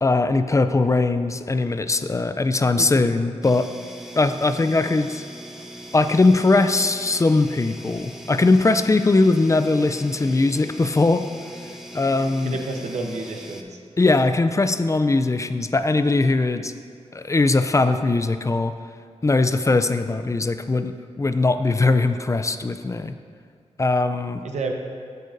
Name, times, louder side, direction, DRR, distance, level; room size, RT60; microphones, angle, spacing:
voice 1, 0.0-3.7 4.2-5.2 5.9-11.3 11.9-12.6 14.0-16.7 17.1-18.7 19.2-23.1 23.8-24.4, left 3 dB, 25° left, 10 dB, 0.4 m, -20 dB
sound 1, 3.4-13.6, right 1 dB, 5° right, 0.7 m, -40 dB
voice 2, 12.4-13.8 24.4-24.7, right 3 dB, 85° right, 2 dB, 0.9 m, -30 dB
14.5 x 6.6 x 2.6 m, 2.1 s
wide cardioid pair, 85°, 11 cm